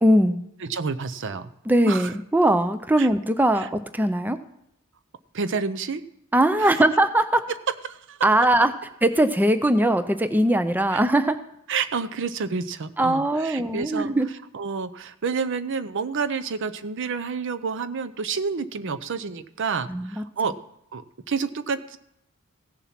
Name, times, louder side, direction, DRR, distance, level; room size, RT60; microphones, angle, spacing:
voice 1, 0.0-0.4 1.7-4.4 6.3-7.4 8.2-8.7 9.0-11.4 13.0-14.3 19.9-20.2, right 1 dB, 10° right, 11 dB, 0.5 m, -20 dB
voice 2, 0.6-1.5 1.9-2.1 3.0-3.1 5.3-6.0 6.6-6.7 7.8-8.2 10.9-11.0 11.7-14.1 14.5-20.5 20.9-22.0, right 5 dB, 60° right, 13 dB, 0.6 m, -29 dB
16.0 x 7.1 x 5.8 m, 0.78 s
head